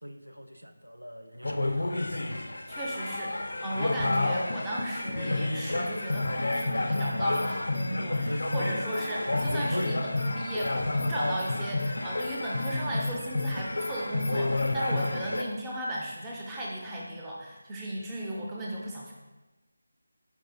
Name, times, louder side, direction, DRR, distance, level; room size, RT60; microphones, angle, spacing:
voice 1, 0.0-2.1, equal, 90° right, 5 dB, 0.4 m, -42 dB
sound 1, 1.4-15.4, left 2 dB, 65° left, 0.3 m, -30 dB
voice 2, 2.7-19.1, right 1 dB, 10° right, -4 dB, 0.6 m, -36 dB
4.6 x 4.0 x 2.5 m, 1.1 s
figure-of-eight pair, 160°, 0 cm